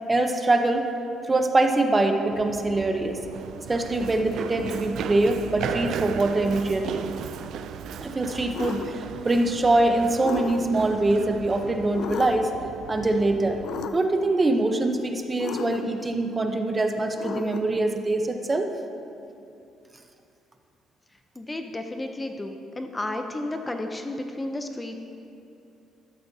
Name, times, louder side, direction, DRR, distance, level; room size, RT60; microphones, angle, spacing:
voice 1, 0.1-0.9 1.3-3.2 3.7-7.0 8.0-12.5 12.9-13.6 13.9-18.7, right 2 dB, 25° right, 5 dB, 0.9 m, -23 dB
Run, 2.3-13.9, right 8 dB, 70° right, 0.4 m, -36 dB
sound 1, 8.5-9.0 10.2-10.9 11.9-12.6 13.6-14.3 15.4-16.1 17.2-17.8, left 7 dB, 65° left, 0.5 m, -34 dB
voice 2, 21.4-25.0, left 1 dB, 15° left, 5 dB, 0.7 m, -32 dB
13.5 x 11.5 x 2.8 m, 2.6 s
cardioid pair, 90°, 0 cm